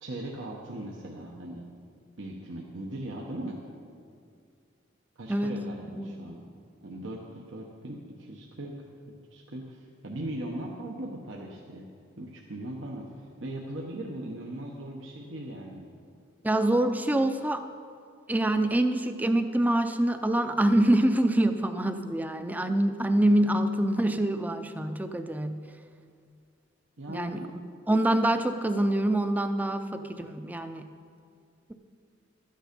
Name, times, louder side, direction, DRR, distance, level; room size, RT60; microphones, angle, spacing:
voice 1, 0.0-1.6 2.2-3.6 5.2-6.4 6.8-8.8 9.3-11.9 12.2-15.9 27.0-27.6, right 1 dB, 75° right, -1 dB, 1.0 m, -39 dB
voice 2, 16.4-17.6 18.3-25.6 27.1-27.4 27.9-30.9, right 1 dB, 10° right, 8 dB, 0.4 m, -25 dB
12.5 x 9.2 x 5.2 m, 2.3 s
head